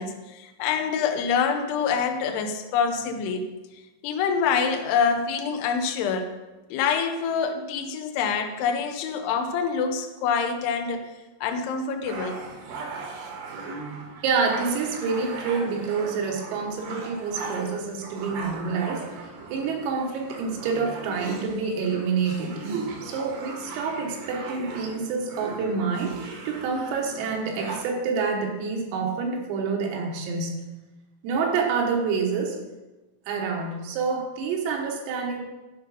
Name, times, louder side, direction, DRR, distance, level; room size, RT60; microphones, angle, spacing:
voice 1, 0.0-3.5 4.0-6.3 6.7-11.1 11.4-12.4, left 6 dB, 80° left, 5 dB, 2.4 m, -26 dB
sound 1, 12.1-27.8, right 4 dB, 70° right, 2.2 m, -38 dB
voice 2, 14.2-30.5 31.2-32.6 33.3-35.4, right 5 dB, 85° right, 0 dB, 4.0 m, -28 dB
11.5 x 5.1 x 4.9 m, 1.1 s
omnidirectional pair, 5.8 m